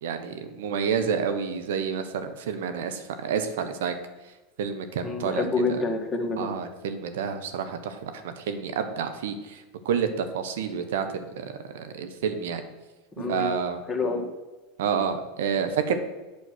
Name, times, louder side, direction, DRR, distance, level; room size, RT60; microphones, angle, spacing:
voice 1, 0.0-4.0 4.6-5.4 6.4-12.7 13.2-13.8 14.8-16.0, right 7 dB, 70° right, 8 dB, 1.0 m, -29 dB
voice 2, 5.0-6.5 13.2-13.5 13.9-14.3, left 3 dB, 20° left, 2 dB, 1.7 m, -27 dB
8.5 x 6.3 x 6.1 m, 1.2 s
hypercardioid pair, 90°, 0 cm